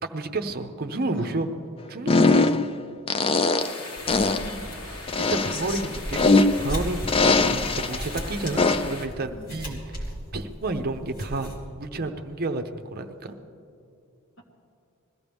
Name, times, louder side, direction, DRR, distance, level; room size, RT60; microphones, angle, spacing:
voice 1, 0.0-1.5 1.9-2.4 5.2-10.0 10.3-13.3, right 2 dB, 45° right, 7 dB, 0.7 m, -31 dB
voice 2, 1.1-1.5 4.2-4.7 5.4-5.8 9.3-9.5 14.4-14.5, left 1 dB, 60° left, -1 dB, 2.1 m, -39 dB
sound 1, 2.1-2.7 3.1-3.8 4.1-4.5 5.1-6.7 7.1-8.0 8.6-9.0, left 3 dB, 25° left, 0.4 m, -21 dB
sound 2, 3.6-9.1, left 2 dB, 80° left, 1.6 m, -39 dB
sound 3, 4.0-11.6, equal, 45° left, 3.0 m, -37 dB
21.0 x 14.5 x 3.5 m, 2.5 s
head